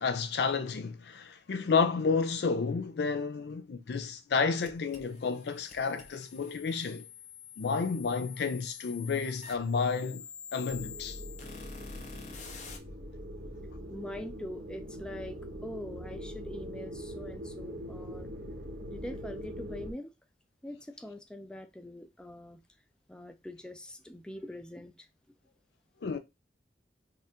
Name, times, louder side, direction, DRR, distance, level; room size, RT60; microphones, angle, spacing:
voice 1, 0.0-7.0 7.6-10.2 10.5-11.2 26.0-26.2, left 5 dB, 65° left, 0.4 m, -31 dB
sound 1, 4.6-12.8, left 6 dB, 45° left, 0.8 m, -47 dB
sound 2, 10.7-19.9, equal, 80° right, 1.1 m, -42 dB
voice 2, 13.9-18.3 18.9-20.1 20.6-22.6 23.1-25.1, left 1 dB, 5° left, 0.4 m, -43 dB
4.3 x 2.5 x 3.6 m
head